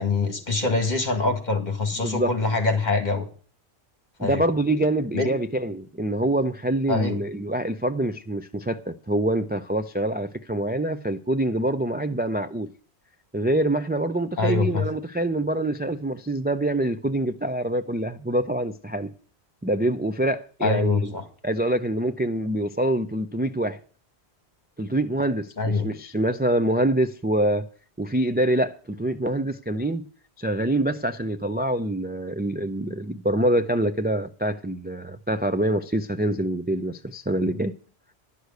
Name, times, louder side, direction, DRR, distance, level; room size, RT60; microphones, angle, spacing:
voice 1, 0.0-3.3 4.2-4.5 5.1-5.3 6.9-7.2 14.4-14.9 20.6-21.2 25.6-25.9, left 3 dB, 40° left, 2.0 m, -24 dB
voice 2, 2.0-2.3 4.2-12.7 13.3-19.1 19.6-21.1 21.4-23.8 24.8-27.7 28.0-30.1 30.4-37.7, right 1 dB, 15° right, 0.3 m, -25 dB
11.5 x 6.5 x 8.1 m
omnidirectional pair, 1.1 m